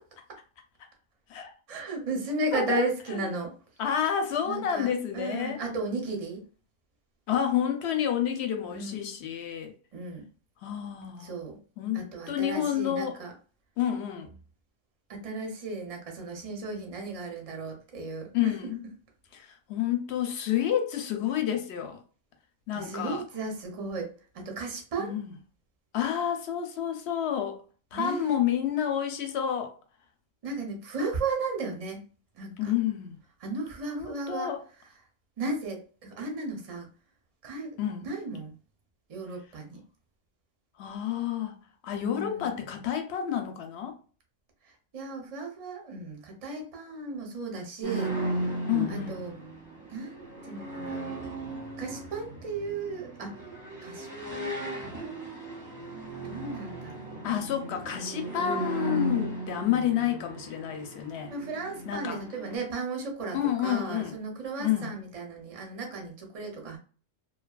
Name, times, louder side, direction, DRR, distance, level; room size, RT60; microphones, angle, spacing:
voice 1, 1.7-3.5 4.4-6.4 8.7-9.0 9.9-10.3 11.2-11.6 11.9-13.3 15.1-18.5 22.7-25.1 27.9-28.3 30.4-32.0 32.3-32.7 33.4-34.5 35.4-36.9 37.4-37.7 38.0-38.5 39.1-39.8 42.0-42.6 44.9-48.5 48.9-49.3 49.9-51.1 51.8-53.3 53.8-54.8 56.2-57.2 61.3-63.4 63.6-66.8, right 3 dB, 35° right, 0.6 m, -35 dB
voice 2, 2.5-3.3 3.8-5.6 7.3-9.7 10.6-11.3 11.8-13.2 13.8-14.4 18.3-18.8 19.3-22.0 22.7-23.2 25.0-25.3 25.9-27.6 27.9-29.7 32.6-33.2 34.0-34.6 37.8-38.1 40.8-44.0 48.7-49.2 57.2-61.3 61.9-62.2 63.3-64.2 64.6-64.9, left 10 dB, 65° left, 0.8 m, -29 dB
sound 1, 47.8-62.6, right 1 dB, 15° right, 0.9 m, -36 dB
2.6 x 2.4 x 2.3 m
omnidirectional pair, 1.3 m